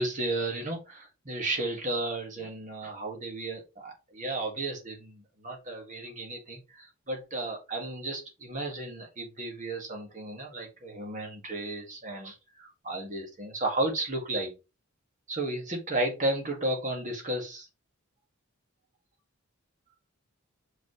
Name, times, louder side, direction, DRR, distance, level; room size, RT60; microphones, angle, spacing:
voice 1, 0.0-14.5 15.3-17.7, right 2 dB, 35° right, 1 dB, 2.0 m, -33 dB
6.0 x 5.3 x 3.2 m, 0.28 s
head